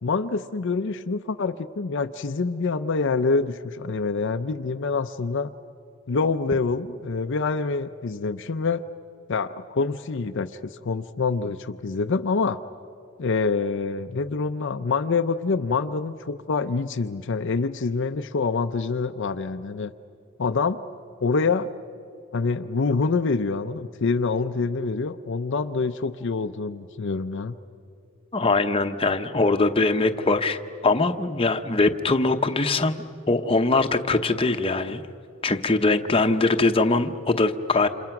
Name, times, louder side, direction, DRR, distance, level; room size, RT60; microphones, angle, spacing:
voice 1, 0.0-5.5 6.1-8.8 9.3-12.6 13.2-19.9 20.4-20.8 21.2-21.7 22.3-27.6, left 4 dB, 55° left, 7 dB, 0.5 m, -26 dB
voice 2, 28.3-35.0 35.4-37.9, left 3 dB, 25° left, 7 dB, 0.8 m, -22 dB
29.5 x 27.5 x 5.9 m, 2.7 s
head